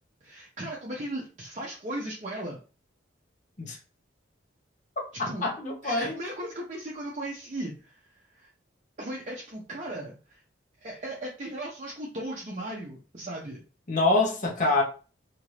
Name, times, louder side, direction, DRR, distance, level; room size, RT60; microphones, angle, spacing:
voice 1, 0.2-2.6 5.3-5.5 5.8-8.0 8.3-8.5 9.0-10.4 10.8-13.6, right 1 dB, 40° right, 0.6 m, -37 dB
voice 2, 5.4-6.2 13.9-14.8, left 2 dB, 40° left, 0.8 m, -25 dB
2.8 x 2.5 x 3.2 m
head